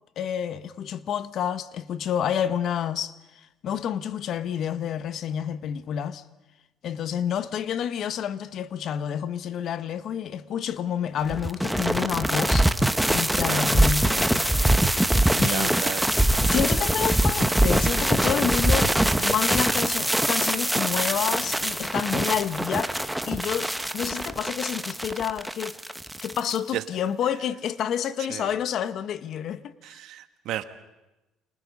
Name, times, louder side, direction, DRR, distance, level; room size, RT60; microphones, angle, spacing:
voice 1, 0.2-3.1 3.6-6.2 6.8-12.7 13.1-14.5 15.4-15.8 16.4-25.8 26.2-29.7, left 9 dB, 55° left, 1.3 m, -29 dB
sound 1, 11.3-26.6, right 1 dB, 5° right, 1.3 m, -23 dB
voice 2, 15.3-16.1 26.7-26.8 28.3-28.5 29.8-30.6, right 13 dB, 70° right, 1.7 m, -33 dB
30.0 x 26.0 x 5.5 m
cardioid pair, 115°, 0 cm